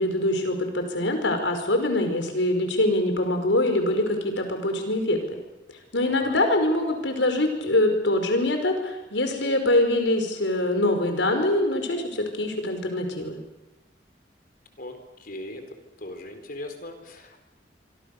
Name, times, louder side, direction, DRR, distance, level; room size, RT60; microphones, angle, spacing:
voice 1, 0.0-5.2 5.9-13.4, left 1 dB, 85° left, 5 dB, 5.3 m, -24 dB
voice 2, 6.0-6.4 14.8-15.6 16.0-17.4, left 1 dB, 50° left, 6 dB, 4.3 m, -39 dB
25.5 x 25.5 x 6.8 m, 1.0 s
head